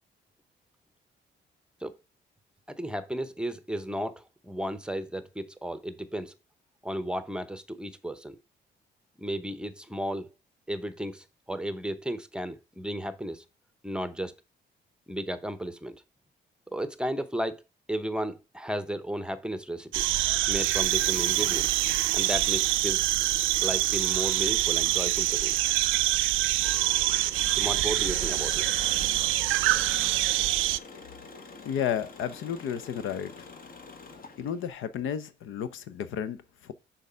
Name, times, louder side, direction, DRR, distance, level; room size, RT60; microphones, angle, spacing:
voice 1, 2.7-6.3 6.8-8.4 9.2-10.3 10.7-13.4 13.8-14.4 15.1-16.0 16.7-17.6 17.9-20.1 20.5-21.8 22.1-23.1 23.6-25.6 27.5-28.6, equal, 5° right, 0.8 m, -34 dB
sound 1, 19.9-30.8, right 16 dB, 85° right, 0.4 m, -25 dB
sound 2, 20.4-26.1, right 7 dB, 30° right, 0.5 m, -42 dB
Engine, 26.6-34.7, left 4 dB, 45° left, 1.4 m, -45 dB
voice 2, 31.6-33.5 34.4-36.7, left 8 dB, 80° left, 0.8 m, -32 dB
6.3 x 3.9 x 5.6 m
cardioid pair, 90°, 20 cm